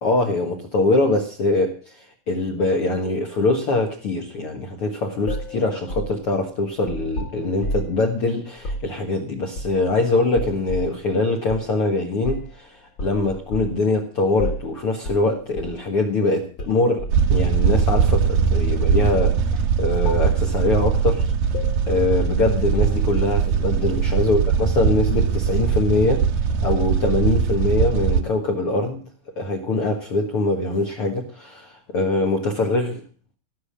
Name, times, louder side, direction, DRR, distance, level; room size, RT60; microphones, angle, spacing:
voice 1, 0.0-21.3 21.9-26.3 26.6-29.0 29.4-33.0, left 2 dB, 60° left, 3 dB, 1.5 m, -23 dB
sound 1, 5.3-8.0 8.6-8.9 9.6-10.0 10.3-11.0 11.5-11.7 12.2-12.6 13.0-13.8 14.4-14.7 15.0-15.3 15.6-15.8 16.6-17.2 17.8-18.6 19.0-19.2 19.5-19.7 20.0-20.4 20.9-21.1 21.5-23.2, equal, 35° left, 2.1 m, -31 dB
sound 2, 17.1-28.2, right 7 dB, 70° right, 2.5 m, -21 dB
17.0 x 6.6 x 8.6 m, 0.41 s
omnidirectional pair, 4.7 m